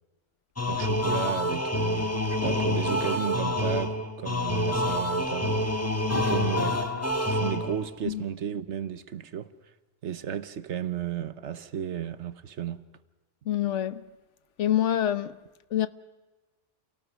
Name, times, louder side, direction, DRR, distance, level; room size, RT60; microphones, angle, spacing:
sound 1, 0.6-7.9, left 1 dB, 10° left, 1.6 m, -27 dB
voice 1, 0.7-5.7 6.1-6.8 7.2-9.5 10.0-12.8, right 9 dB, 70° right, 1.2 m, -34 dB
voice 2, 13.4-14.0 14.6-15.4 15.7-15.9, left 11 dB, 75° left, 1.2 m, -26 dB
28.5 x 18.0 x 6.1 m
omnidirectional pair, 1.2 m